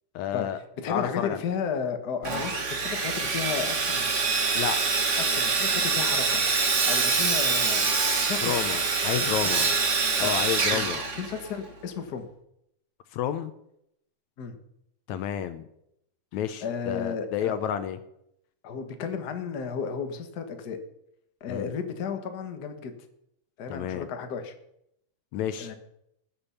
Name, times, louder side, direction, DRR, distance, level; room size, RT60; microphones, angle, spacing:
voice 1, 0.2-0.6 0.9-1.4 4.6-4.8 8.4-9.7 10.2-11.0 13.1-13.5 15.1-15.6 16.3-18.0 21.5-21.7 23.7-24.1 25.3-25.7, left 9 dB, 75° left, 11 dB, 2.0 m, -30 dB
voice 2, 0.8-4.2 5.2-7.9 8.3-8.7 9.0-9.6 10.2-10.3 10.7-10.9 11.1-12.3 14.4-14.6 16.6-17.5 18.6-20.8 21.4-22.9 23.6-24.5 25.6-25.7, left 6 dB, 45° left, 6 dB, 1.4 m, -33 dB
Sawing, 2.2-11.7, right 4 dB, 50° right, 0.8 m, -25 dB
20.0 x 7.1 x 5.7 m, 0.78 s
omnidirectional pair, 3.5 m